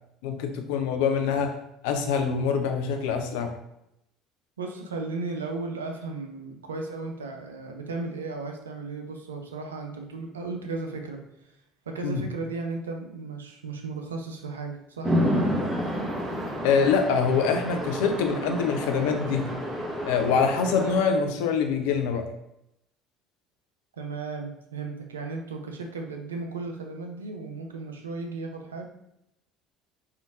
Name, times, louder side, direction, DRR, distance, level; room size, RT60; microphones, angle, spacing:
voice 1, 0.2-1.5 1.8-3.5 12.0-12.2 16.6-19.5 20.1-22.3, left 6 dB, 65° left, 6 dB, 0.4 m, -25 dB
voice 2, 4.6-11.3 11.9-15.5 24.0-28.9, right 3 dB, 80° right, 4 dB, 0.4 m, -35 dB
Chatter / Traffic noise roadway noise / Train, 15.0-21.0, equal, 10° right, 1.1 m, -29 dB
3.6 x 2.5 x 2.4 m, 0.81 s
figure-of-eight pair, 60°, 0 cm